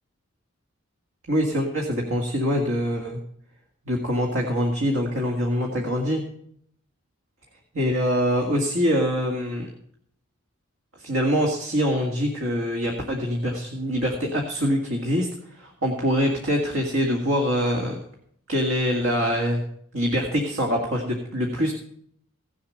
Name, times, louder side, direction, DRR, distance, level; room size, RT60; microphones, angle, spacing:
voice 1, 1.3-3.2 3.9-6.2 7.7-9.7 11.0-15.3 15.5-18.0 18.5-19.6 19.9-21.7, equal, 75° right, 0 dB, 2.1 m, -24 dB
17.0 x 7.3 x 6.4 m, 0.66 s
head